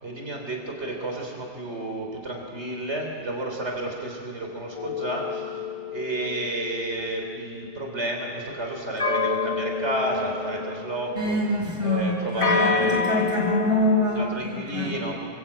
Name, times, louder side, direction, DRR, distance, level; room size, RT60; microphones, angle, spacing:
voice 1, 0.0-5.6 5.9-11.4 11.8-13.2 14.1-15.1, right 1 dB, 75° right, 1 dB, 3.8 m, -31 dB
sound 1, 4.8-8.0 9.0-11.4 12.4-14.2, left 5 dB, 30° left, 1.4 m, -29 dB
voice 2, 11.2-14.9, left 1 dB, 25° right, -1 dB, 5.6 m, -25 dB
28.0 x 23.0 x 8.8 m, 2.4 s
omnidirectional pair, 1.2 m